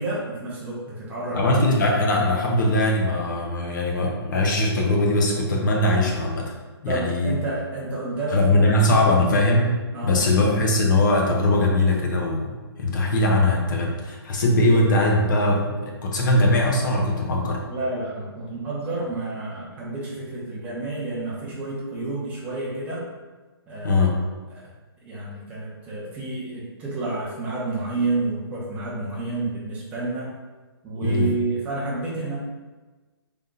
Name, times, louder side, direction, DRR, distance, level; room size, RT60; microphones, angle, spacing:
voice 1, 0.0-1.8 6.8-8.7 9.0-9.2 9.9-10.2 17.7-23.0 23.7-24.0 24.5-24.7 25.0-30.3 30.8-32.4, right 2 dB, 10° right, -6 dB, 0.7 m, -30 dB
voice 2, 1.3-6.5 6.8-7.3 8.3-9.8 10.0-17.6 23.8-24.2 31.0-31.3, left 1 dB, 50° left, 0 dB, 0.8 m, -21 dB
3.5 x 2.7 x 3.7 m, 1.3 s
hypercardioid pair, 160°, 13 cm